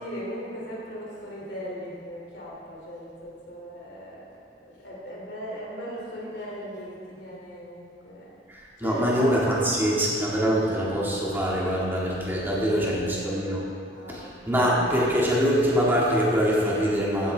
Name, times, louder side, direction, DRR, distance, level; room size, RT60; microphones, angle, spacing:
voice 1, 0.0-4.4 4.6-8.3 8.8-9.6 9.9-10.5 12.4-13.6 13.9-14.3, equal, 75° left, -5 dB, 3.0 m, -38 dB
voice 2, 8.8-13.6 14.1-17.3, equal, 15° right, -6 dB, 2.1 m, -24 dB
15.0 x 8.5 x 3.5 m, 2.3 s
head